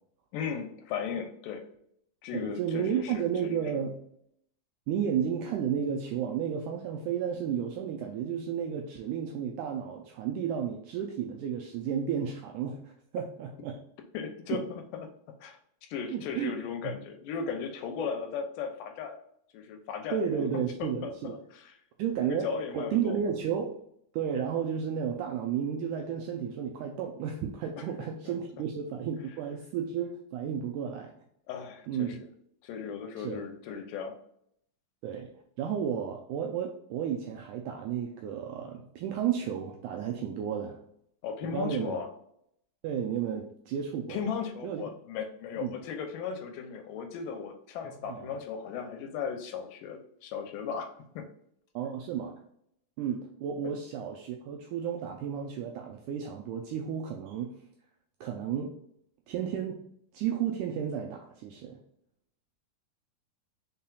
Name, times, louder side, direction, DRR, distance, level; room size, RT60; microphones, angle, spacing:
voice 1, 0.3-1.6 2.2-3.7 14.1-15.1 15.4-15.6 15.9-19.2 19.5-20.4 20.8-21.7 22.3-23.2 28.3-28.4 31.5-32.2 32.6-34.1 41.2-42.1 44.1-50.9 51.2-51.3, left 6 dB, 80° left, 5 dB, 2.2 m, -36 dB
voice 2, 2.3-4.0 4.9-13.8 14.5-14.6 16.1-16.6 16.8-16.9 20.1-21.3 22.0-22.5 22.7-23.8 24.1-31.1 31.9-32.2 33.2-33.4 35.0-35.3 35.6-40.8 41.4-42.0 42.8-44.2 44.6-44.9 45.6-45.8 48.0-48.4 51.7-52.4 53.0-57.6 58.2-58.7 59.3-59.8 60.1-61.8, right 8 dB, 85° right, 2 dB, 1.8 m, -32 dB
5.6 x 3.8 x 2.3 m, 0.71 s
omnidirectional pair, 4.1 m